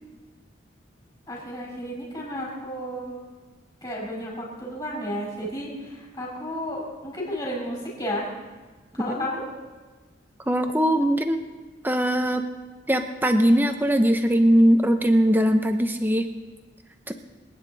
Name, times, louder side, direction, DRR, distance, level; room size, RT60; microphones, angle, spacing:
voice 1, 1.3-3.2 3.8-8.3 8.9-9.5, equal, 20° left, -4 dB, 5.7 m, -32 dB
voice 2, 10.5-11.4 11.8-12.4 12.9-16.3 17.1-17.2, equal, 10° right, 6 dB, 0.9 m, -20 dB
26.5 x 9.7 x 4.2 m, 1.3 s
head